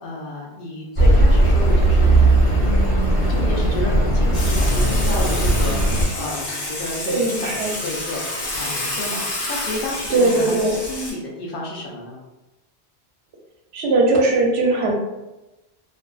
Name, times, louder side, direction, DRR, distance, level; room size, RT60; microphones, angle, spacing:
voice 1, 0.0-10.6 10.8-12.2, left 2 dB, 65° left, -2 dB, 0.7 m, -32 dB
Accelerating revving vroom, 1.0-6.0, right 1 dB, 35° right, 0.6 m, -17 dB
Water / Water tap faucet / Sink (filling or washing), 4.3-11.1, left 1 dB, 90° left, 1.1 m, -29 dB
voice 2, 7.1-7.7 10.1-10.8 13.7-14.9, right 2 dB, 75° right, -1 dB, 0.8 m, -19 dB
2.5 x 2.2 x 2.3 m, 1.0 s
omnidirectional pair, 1.1 m